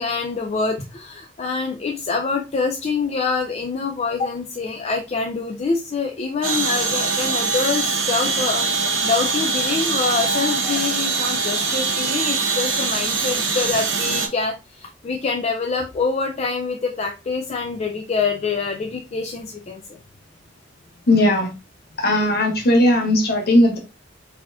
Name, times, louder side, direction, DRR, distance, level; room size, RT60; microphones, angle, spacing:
voice 1, 0.0-20.0, left 4 dB, 35° left, 2 dB, 0.4 m, -25 dB
sound 1, 6.4-14.3, right 4 dB, 90° right, 0.8 m, -23 dB
voice 2, 21.1-21.5 22.0-23.8, left 1 dB, 60° left, 3 dB, 1.0 m, -17 dB
4.1 x 2.8 x 2.3 m, 0.28 s
head